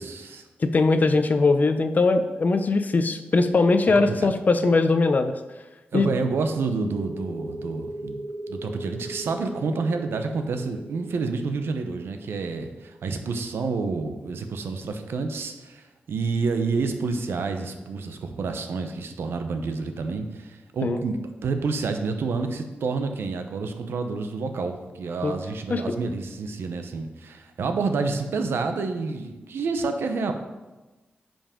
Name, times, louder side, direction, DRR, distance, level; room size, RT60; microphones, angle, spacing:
voice 1, 0.0-0.4 4.0-4.3 5.9-8.2 8.5-30.3, right 4 dB, 90° right, 6 dB, 0.8 m, -29 dB
voice 2, 0.6-5.3 5.9-6.1 20.8-21.0 25.2-25.3 25.7-25.8, left 3 dB, 45° left, 9 dB, 0.5 m, -21 dB
sound 1, 6.5-13.9, right 1 dB, 5° left, 1.2 m, -39 dB
10.0 x 5.2 x 3.7 m, 1.1 s
wide cardioid pair, 85°, 4 cm